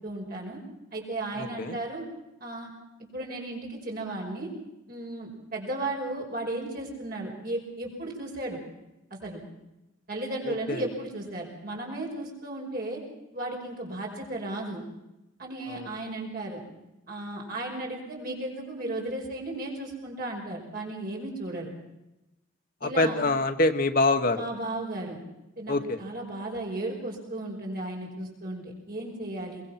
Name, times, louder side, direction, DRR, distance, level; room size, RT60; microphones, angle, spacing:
voice 1, 0.0-0.6 0.9-2.0 2.4-2.7 3.1-4.5 4.9-8.6 9.1-9.4 10.1-13.0 13.3-14.8 15.4-16.6 17.1-21.7 22.8-23.2 24.3-25.2 25.6-29.6, right 2 dB, 45° right, -1 dB, 5.4 m, -35 dB
voice 2, 1.4-1.8 10.5-10.8 15.7-15.9 22.8-24.4 25.7-26.0, left 2 dB, 45° left, 7 dB, 1.3 m, -25 dB
23.0 x 20.5 x 5.9 m, 0.95 s
head